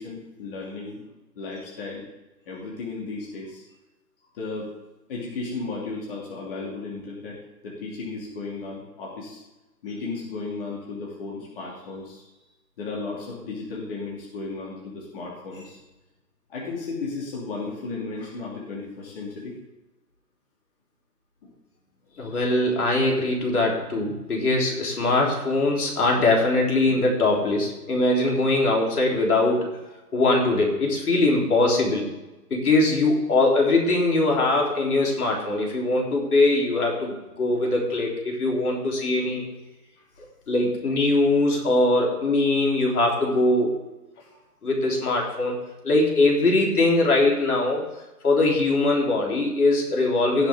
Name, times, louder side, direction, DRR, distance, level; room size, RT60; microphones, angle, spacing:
voice 1, 0.0-2.0 2.5-3.6 4.3-4.7 5.1-7.4 7.6-9.4 9.8-12.2 12.8-15.8 16.5-19.5 22.1-22.4 44.2-44.4, left 3 dB, 35° left, -4 dB, 2.8 m, -34 dB
voice 2, 22.2-29.7 30.1-32.0 32.5-39.4 40.5-43.7 44.6-45.6 45.8-47.8 48.2-50.5, left 2 dB, 65° left, -1 dB, 3.7 m, -21 dB
17.0 x 7.1 x 3.7 m, 1.1 s
hypercardioid pair, 160°, 48 cm